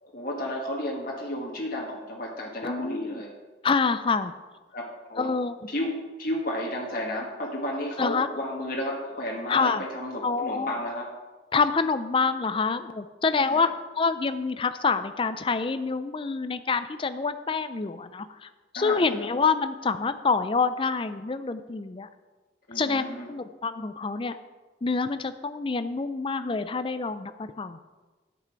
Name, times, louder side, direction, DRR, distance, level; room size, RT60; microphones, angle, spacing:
voice 1, 0.0-3.3 4.7-5.3 5.7-11.1 13.4-13.7 18.7-19.3 22.7-23.3, left 1 dB, 50° left, -3 dB, 1.4 m, -32 dB
voice 2, 2.6-3.2 3.6-4.3 5.2-5.6 8.0-8.3 9.5-9.8 10.2-10.8 11.5-13.7 14.0-18.5 18.7-22.1 22.8-24.4 24.8-27.8, left 4 dB, 30° left, 11 dB, 0.4 m, -27 dB
10.5 x 8.2 x 4.6 m, 1.3 s
head